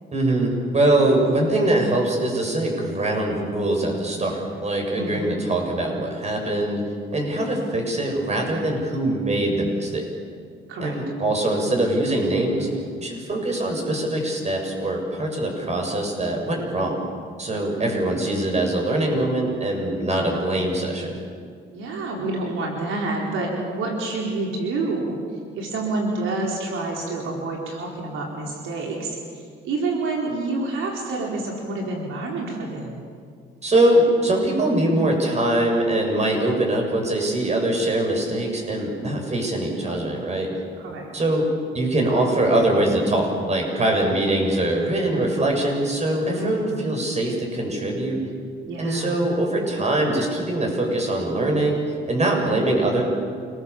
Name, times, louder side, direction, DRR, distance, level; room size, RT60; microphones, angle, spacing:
voice 1, 0.1-6.8 7.1-10.1 10.8-12.7 13.0-17.0 17.4-21.2 33.6-40.5 41.1-41.5 41.7-48.2 48.8-53.0, right 1 dB, 35° right, 1 dB, 7.5 m, -22 dB
voice 2, 5.0-5.3 10.7-11.0 21.7-25.2 25.5-33.0 40.8-41.1 46.4-46.8 48.6-49.3, right 2 dB, 85° right, -1 dB, 4.5 m, -28 dB
28.5 x 21.5 x 7.2 m, 2.1 s
cardioid pair, 90°, 20 cm